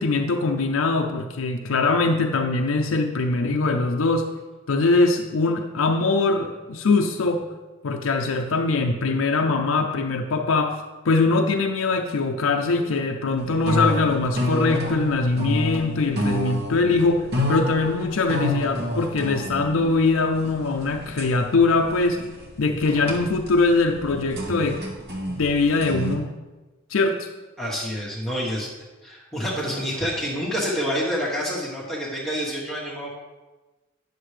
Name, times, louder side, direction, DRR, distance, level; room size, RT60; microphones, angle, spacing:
voice 1, 0.0-4.3 4.7-7.4 7.8-22.2 22.6-24.8 25.3-26.4 26.9-27.3, left 3 dB, 90° left, 3 dB, 0.5 m, -22 dB
sound 1, 13.4-26.2, left 1 dB, 50° right, 1.4 m, -29 dB
voice 2, 27.6-28.7 29.0-33.1, equal, 5° left, -6 dB, 1.1 m, -28 dB
9.9 x 6.6 x 3.2 m, 1.2 s
head